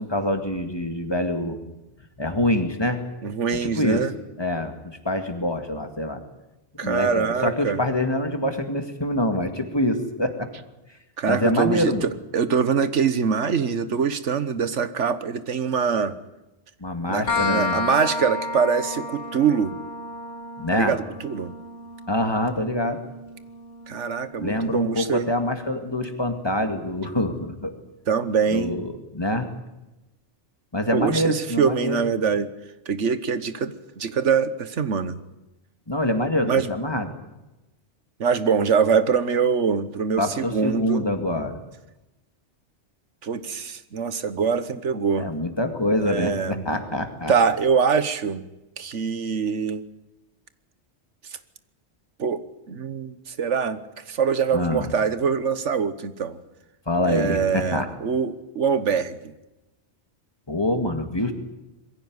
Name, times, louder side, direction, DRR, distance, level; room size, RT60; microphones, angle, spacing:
voice 1, 0.0-1.6 2.2-3.0 3.6-4.0 4.4-6.2 6.8-10.5 11.3-12.0 16.8-17.8 20.6-21.0 22.1-23.0 24.4-27.7 28.5-29.5 30.7-32.0 35.9-37.1 40.2-41.6 45.2-47.3 54.5-54.9 56.9-57.9 60.5-61.3, left 1 dB, 20° left, 6 dB, 2.2 m, -25 dB
voice 2, 3.2-4.1 6.8-7.8 11.2-16.1 17.1-19.8 20.7-21.5 23.9-25.3 28.1-28.8 30.9-32.5 32.9-35.2 36.4-36.7 38.2-41.1 43.2-45.3 46.0-46.6 47.3-48.5 48.8-49.8 52.2-53.8 54.0-56.4 57.1-59.4, right 6 dB, 85° right, 13 dB, 1.5 m, -24 dB
sound 1, 17.3-24.7, left 3 dB, 85° left, 2.5 m, -32 dB
22.0 x 15.5 x 9.7 m, 0.99 s
omnidirectional pair, 1.2 m